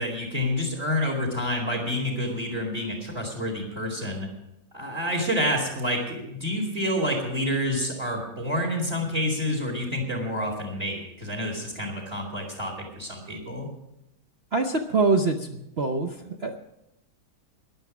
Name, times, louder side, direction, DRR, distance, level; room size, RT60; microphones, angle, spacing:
voice 1, 0.0-4.3 4.7-13.7, left 1 dB, 30° right, 2 dB, 2.9 m, -28 dB
voice 2, 14.5-16.6, right 3 dB, 75° right, 4 dB, 0.5 m, -25 dB
14.5 x 10.5 x 6.1 m, 0.83 s
omnidirectional pair, 2.3 m